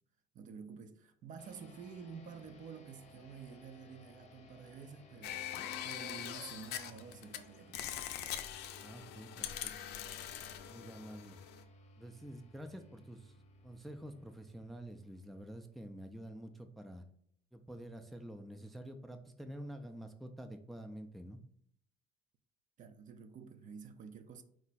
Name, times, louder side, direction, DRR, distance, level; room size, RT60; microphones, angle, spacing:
voice 1, 0.3-8.0 22.8-24.4, right 6 dB, 50° right, 0.5 m, -50 dB
sound 1, 1.4-16.2, left 1 dB, 40° left, 0.7 m, -60 dB
sound 2, 5.2-7.4 7.7-11.6, left 10 dB, 80° left, 0.5 m, -43 dB
voice 2, 8.8-9.7 10.7-11.4 12.0-13.4 13.6-17.0 17.5-21.4, right 1 dB, ahead, 0.4 m, -48 dB
4.5 x 2.1 x 4.0 m
cardioid pair, 110°, 17 cm